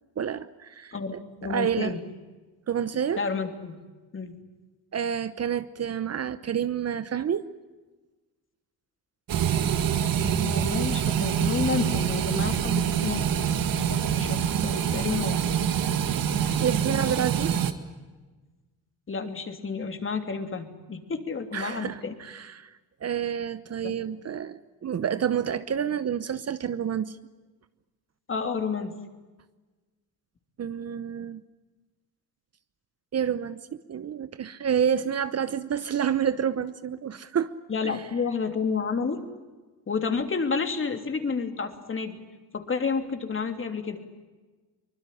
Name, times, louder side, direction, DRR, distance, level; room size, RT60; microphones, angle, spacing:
voice 1, 0.2-1.9 2.7-3.2 4.9-7.5 16.6-17.5 21.5-22.7 23.0-27.2 30.6-31.4 33.1-37.5 37.8-37.9, right 8 dB, 40° right, 14 dB, 1.0 m, -29 dB
voice 2, 0.9-2.0 3.2-3.8 4.1-4.4 10.2-13.2 13.7-15.4 16.8-17.2 19.1-22.1 23.8-24.0 28.3-28.9 37.7-39.2 39.9-42.2 42.5-44.0, left 5 dB, 30° left, 7 dB, 3.0 m, -30 dB
sound 1, 9.3-17.7, right 8 dB, 60° right, 2.0 m, -25 dB
24.0 x 20.5 x 10.0 m, 1.3 s
cardioid pair, 90°, 39 cm